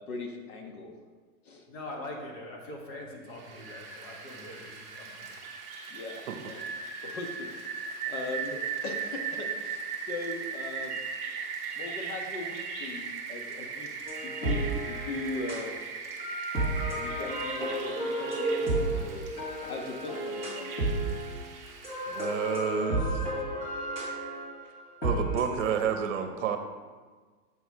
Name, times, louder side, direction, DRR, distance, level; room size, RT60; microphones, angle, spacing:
voice 1, 0.1-1.0 1.4-1.6 5.9-6.6 7.0-11.0 11.7-13.9 14.2-15.8 16.9-19.3 19.6-20.7, left 3 dB, 75° left, 3 dB, 1.5 m, -39 dB
voice 2, 1.7-5.4, left 1 dB, 45° left, 0 dB, 1.7 m, -43 dB
Rain, 3.3-22.8, right 5 dB, 15° right, 1.0 m, -39 dB
sound 1, 14.1-15.6 16.2-21.3 21.7-25.8, right 1 dB, 25° left, 1.9 m, -32 dB
voice 3, 22.1-23.2 25.0-26.6, right 7 dB, 55° right, 7 dB, 0.8 m, -30 dB
8.1 x 4.6 x 4.7 m, 1.4 s
supercardioid pair, 165°, 43 cm